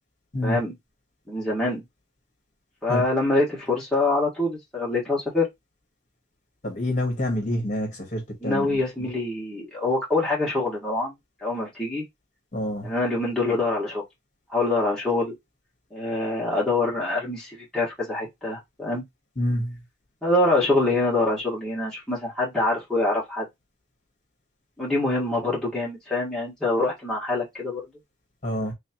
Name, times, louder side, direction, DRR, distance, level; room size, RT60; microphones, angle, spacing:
voice 1, 0.4-0.7 1.3-1.8 2.8-5.5 8.4-11.1 11.4-12.0 12.8-14.0 14.5-15.3 15.9-19.0 20.2-23.5 24.8-27.8, left 2 dB, 5° left, 1.5 m, -25 dB
voice 2, 6.6-8.8 12.5-12.9 19.4-19.7 28.4-28.7, left 1 dB, 40° left, 1.3 m, -27 dB
3.4 x 3.2 x 2.9 m
head